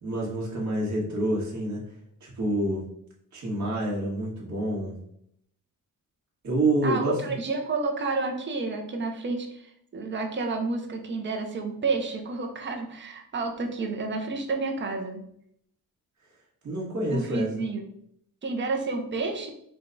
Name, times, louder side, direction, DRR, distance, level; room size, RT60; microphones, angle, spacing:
voice 1, 0.0-1.8 2.2-2.8 3.3-5.0 6.4-7.4 16.6-17.5, right 1 dB, 50° right, -4 dB, 1.5 m, -27 dB
voice 2, 6.8-15.2 17.1-17.8 18.4-19.5, right 3 dB, 35° right, 4 dB, 0.6 m, -30 dB
5.0 x 2.3 x 3.9 m, 0.71 s
wide cardioid pair, 175°, 35 cm